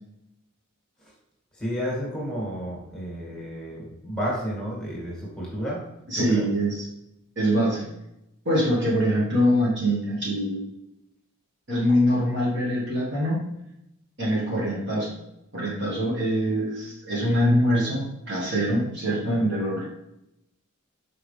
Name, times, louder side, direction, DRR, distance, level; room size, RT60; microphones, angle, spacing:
voice 1, 1.5-5.8 6.2-6.5, equal, 5° left, -5 dB, 2.0 m, -31 dB
voice 2, 6.1-6.9 7.4-7.9 8.5-10.7 11.7-13.4 14.2-15.2 15.5-19.9, equal, 55° right, -4 dB, 1.7 m, -24 dB
5.9 x 4.9 x 3.3 m, 0.85 s
head